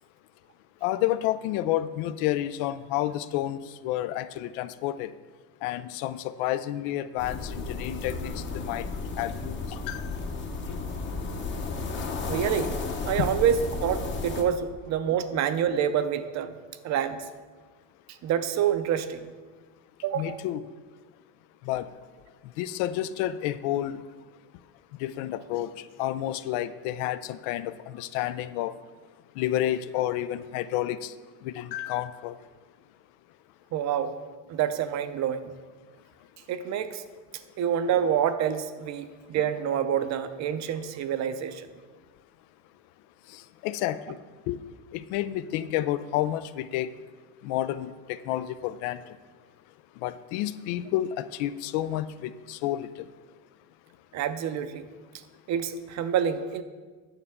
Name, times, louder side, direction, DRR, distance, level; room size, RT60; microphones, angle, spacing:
voice 1, 0.8-5.1 5.6-8.9 9.2-10.1 13.2-13.3 20.1-20.6 21.6-21.9 22.6-24.0 25.0-25.7 26.0-28.7 29.4-31.1 31.4-32.4 43.3-44.2 44.5-44.6 44.9-46.9 47.4-49.0 50.0-52.9, left 13 dB, 80° left, 14 dB, 0.5 m, -30 dB
sound 1, 7.2-14.4, left 4 dB, 25° left, 0.8 m, -33 dB
voice 2, 12.2-12.7 13.0-16.5 16.8-17.2 18.2-19.2 20.0-20.4 33.7-34.1 34.5-35.4 36.5-37.0 37.6-41.7 54.1-54.9 55.5-56.6, right 9 dB, 40° right, 10 dB, 0.6 m, -27 dB
9.1 x 6.7 x 3.6 m, 1.4 s
cardioid pair, 135°, 42 cm